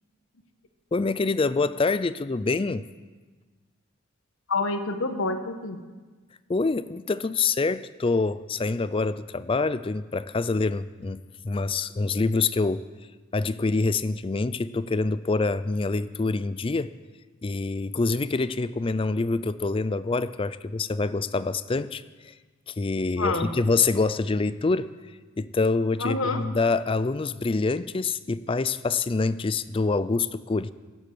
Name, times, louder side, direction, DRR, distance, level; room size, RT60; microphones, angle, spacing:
voice 1, 0.9-2.8 6.5-12.8 13.3-16.9 17.4-22.3 22.7-24.9 25.4-30.7, left 3 dB, 25° left, 15 dB, 0.4 m, -26 dB
voice 2, 4.5-5.8 23.2-23.5 26.0-26.4, left 3 dB, 70° left, 7 dB, 1.3 m, -27 dB
17.5 x 8.2 x 7.7 m, 1.3 s
head